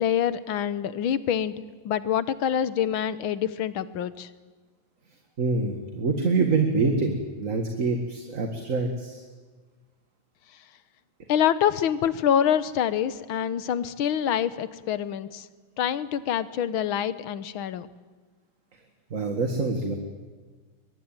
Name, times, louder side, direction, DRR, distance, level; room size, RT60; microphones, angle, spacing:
voice 1, 0.0-1.5 1.9-4.3 11.3-15.5 15.8-17.9, left 9 dB, 75° left, 14 dB, 1.8 m, -26 dB
voice 2, 5.4-9.2 19.1-20.0, right 3 dB, 40° right, 4 dB, 2.2 m, -25 dB
23.5 x 21.5 x 9.0 m, 1.4 s
omnidirectional pair, 2.3 m